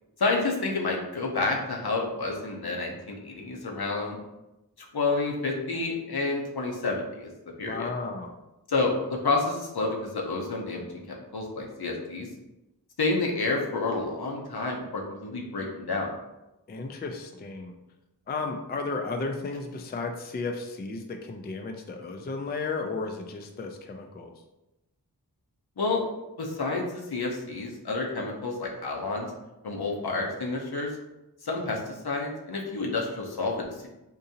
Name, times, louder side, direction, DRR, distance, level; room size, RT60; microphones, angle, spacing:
voice 1, 0.2-4.2 4.8-7.3 7.6-7.9 8.7-12.3 13.0-16.1 25.8-26.0 26.4-29.3 29.6-30.9 31.4-33.9, left 3 dB, 75° left, 0 dB, 0.7 m, -29 dB
voice 2, 7.6-8.3 16.7-17.7 18.3-24.3, left 3 dB, 25° left, 4 dB, 0.4 m, -34 dB
3.8 x 2.7 x 2.7 m, 0.97 s
wide cardioid pair, 40°, 39 cm